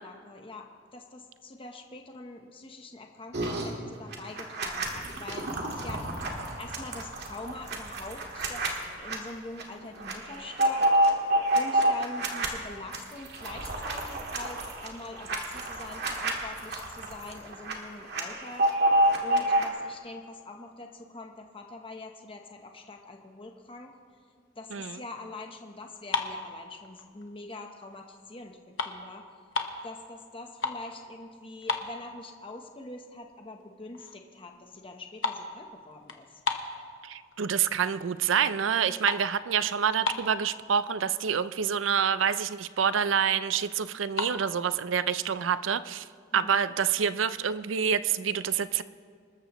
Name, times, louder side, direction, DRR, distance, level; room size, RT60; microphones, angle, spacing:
voice 1, 0.0-10.9 11.5-18.7 19.2-23.9 24.6-29.3 29.8-36.4 46.3-46.6, left 2 dB, 30° left, 3 dB, 1.0 m, -44 dB
sound 1, 3.3-3.7 4.1-9.2 9.6-9.7 10.0-12.5 12.9-17.7 18.0-19.7, right 1 dB, 60° right, 1.9 m, -28 dB
sound 2, 25.9-27.4 27.8-28.1 28.4-29.9 30.3-30.9 31.2-31.3 31.6-32.5 32.9-33.0 33.6-33.7 33.9-34.3 34.6-37.4 37.8-38.3 38.6-40.5 41.2-41.3 41.5-41.8 42.2-42.3 42.5-43.2 43.9-44.4, left 3 dB, 75° left, 1.1 m, -34 dB
voice 2, 37.0-46.0 46.3-48.8, right 7 dB, 75° right, 14 dB, 0.5 m, -27 dB
26.5 x 13.5 x 3.1 m, 2.1 s
head